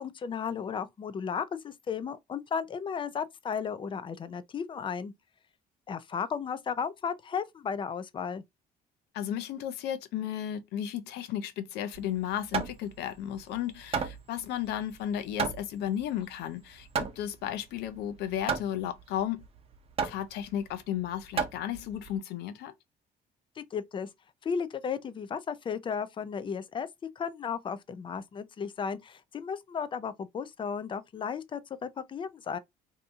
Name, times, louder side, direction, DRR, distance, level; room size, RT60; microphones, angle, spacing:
voice 1, 0.0-5.1 5.9-8.4 23.6-24.1 24.4-26.9 27.2-32.6, left 6 dB, 30° left, 0.4 m, -34 dB
voice 2, 9.1-19.4 20.0-22.7, left 10 dB, 80° left, 0.6 m, -34 dB
Hammer, 11.9-22.2, right 5 dB, 35° right, 0.7 m, -35 dB
2.7 x 2.7 x 3.5 m
cardioid pair, 110°, 17 cm